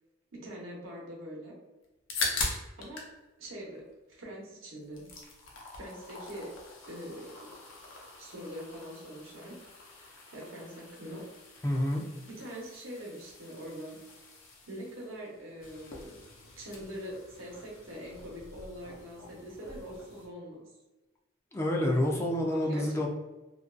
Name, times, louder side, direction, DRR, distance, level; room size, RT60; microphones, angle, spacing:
voice 1, 0.3-1.5 2.8-3.0 3.4-5.0 5.7-6.5 6.9-7.3 8.2-9.5 9.8-11.2 12.3-14.0 14.7-16.2 16.6-20.7 22.5-23.1, equal, 90° right, -3 dB, 0.8 m, -43 dB
sound 1, 1.8-3.1 3.4-4.4 4.8-20.3, left 3 dB, 75° left, 0.6 m, -42 dB
voice 2, 11.6-12.0 21.5-23.1, left 1 dB, 15° left, -1 dB, 0.3 m, -28 dB
2.4 x 2.2 x 2.4 m, 1.1 s
head